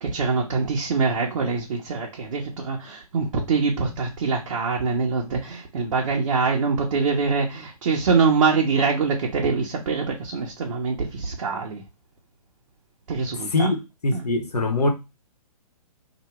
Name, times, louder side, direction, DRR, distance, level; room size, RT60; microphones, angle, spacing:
voice 1, 0.0-11.8 13.1-13.7 14.1-14.2, right 4 dB, 55° right, 1.0 m, -24 dB
voice 2, 13.5-14.9, left 2 dB, 85° left, 1.0 m, -23 dB
3.0 x 2.7 x 4.4 m
figure-of-eight pair, 130°, 20 cm